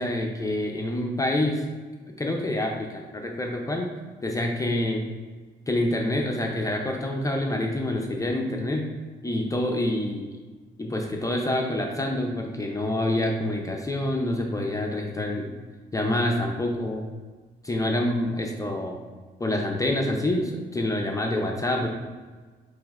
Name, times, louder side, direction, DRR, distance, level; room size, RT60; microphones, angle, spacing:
voice 1, 0.0-1.6 2.2-3.9 4.2-5.0 5.7-8.9 9.2-10.3 10.8-15.5 15.9-17.0 17.6-19.0 19.4-21.9, left 1 dB, 15° left, 1 dB, 0.5 m, -27 dB
5.2 x 3.0 x 2.4 m, 1.4 s
cardioid pair, 90°, 20 cm